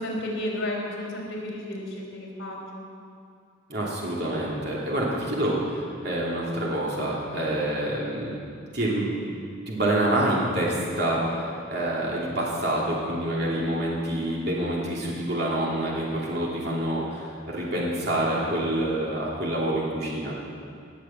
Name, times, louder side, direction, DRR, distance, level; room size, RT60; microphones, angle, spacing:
voice 1, 0.0-2.9, left 1 dB, 70° left, -1 dB, 3.6 m, -32 dB
voice 2, 3.7-8.3 8.7-9.2 9.7-20.4, right 1 dB, 55° right, -4 dB, 2.9 m, -27 dB
18.5 x 7.4 x 7.6 m, 2.3 s
head